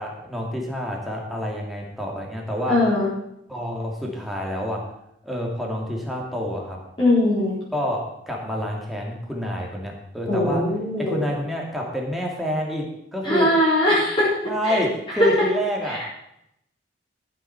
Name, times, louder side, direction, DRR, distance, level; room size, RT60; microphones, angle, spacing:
voice 1, 0.0-2.9 3.5-4.9 5.2-6.8 7.7-10.7 11.0-13.6 13.9-14.0 14.4-16.0, equal, ahead, -2 dB, 2.6 m, -28 dB
voice 2, 2.7-3.1 7.0-7.6 10.3-11.2 13.2-14.3 14.6-14.8, left 1 dB, 30° left, -9 dB, 4.3 m, -20 dB
14.0 x 7.6 x 6.0 m, 0.79 s
head